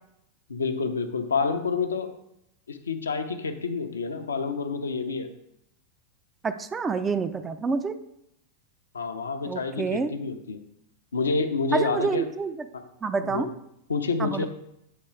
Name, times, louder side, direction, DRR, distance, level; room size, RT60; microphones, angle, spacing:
voice 1, 0.5-2.1 2.7-5.3 8.9-10.6 11.1-12.2 13.2-13.5 13.9-14.5, left 4 dB, 70° left, 7 dB, 0.5 m, -28 dB
voice 2, 6.4-8.0 9.5-10.1 11.7-12.7 13.0-13.5 14.2-14.5, right 4 dB, 15° right, 9 dB, 0.4 m, -28 dB
7.6 x 3.0 x 4.5 m, 0.80 s
figure-of-eight pair, 90°, 0 cm